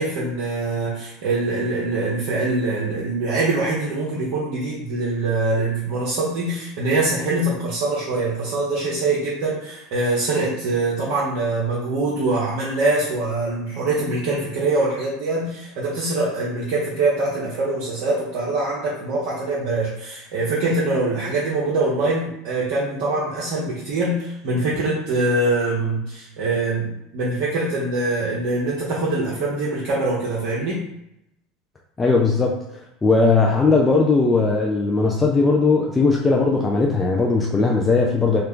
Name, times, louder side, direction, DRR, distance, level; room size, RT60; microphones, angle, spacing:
voice 1, 0.0-30.8, right 2 dB, 55° right, -6 dB, 0.7 m, -23 dB
voice 2, 32.0-32.6 33.0-38.4, left 3 dB, 15° left, 0 dB, 0.4 m, -18 dB
3.2 x 2.4 x 3.5 m, 0.82 s
figure-of-eight pair, 75°, 0 cm